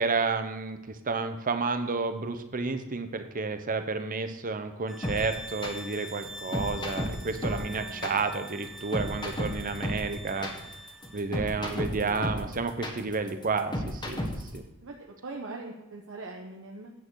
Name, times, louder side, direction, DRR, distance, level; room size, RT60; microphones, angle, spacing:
voice 1, 0.0-10.5 11.1-14.2 14.5-14.6, right 4 dB, 40° right, 8 dB, 0.8 m, -31 dB
sound 1, 4.9-11.3, equal, ahead, 0.8 m, -44 dB
sound 2, 5.0-14.6, left 1 dB, 20° left, 1.4 m, -33 dB
voice 2, 7.4-8.2 11.5-12.3 14.8-16.9, right 2 dB, 60° right, 0 dB, 1.0 m, -42 dB
9.3 x 8.4 x 4.7 m, 0.97 s
head